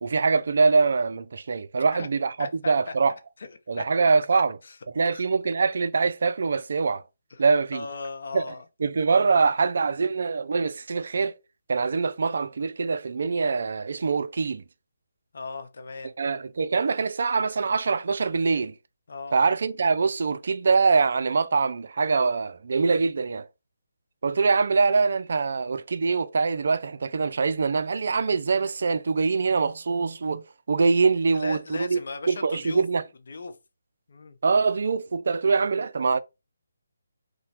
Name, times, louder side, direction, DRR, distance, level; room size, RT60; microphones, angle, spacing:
voice 1, 0.0-3.1 3.7-4.6 5.0-7.0 7.4-7.8 8.3-8.4 8.8-11.4 11.7-14.6 16.2-18.7 19.3-23.5 24.2-32.0 32.3-33.0 34.4-36.2, right 4 dB, 60° right, 0.3 m, -24 dB
voice 2, 2.4-2.7 3.4-3.5 3.8-4.8 5.1-5.2 7.3-7.4 7.7-8.7 15.3-16.1 19.1-19.5 31.3-32.8 33.3-33.5 34.1-34.4, left 4 dB, 60° left, 0.6 m, -37 dB
2.9 x 2.1 x 2.8 m
figure-of-eight pair, 155°, 0 cm